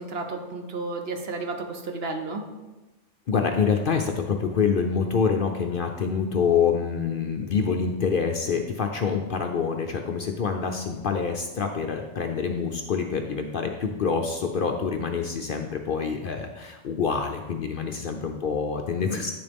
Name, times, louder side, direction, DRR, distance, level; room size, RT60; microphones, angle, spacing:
voice 1, 0.0-2.4, right 3 dB, 55° right, 5 dB, 1.0 m, -32 dB
voice 2, 3.3-19.3, left 6 dB, 55° left, 4 dB, 0.7 m, -26 dB
9.6 x 6.9 x 3.5 m, 1.1 s
omnidirectional pair, 1.3 m